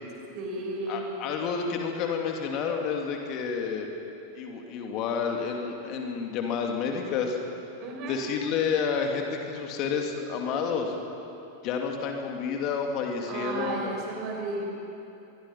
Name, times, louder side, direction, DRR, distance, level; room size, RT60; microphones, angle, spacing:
voice 1, 0.3-1.1 7.8-8.2 13.3-14.7, right 2 dB, 40° right, 0 dB, 5.6 m, -33 dB
voice 2, 0.9-3.9 4.3-7.4 8.1-10.9 11.6-14.0, left 6 dB, 40° left, 2 dB, 2.5 m, -30 dB
25.5 x 22.0 x 5.8 m, 2.8 s
figure-of-eight pair, 90°, 0 cm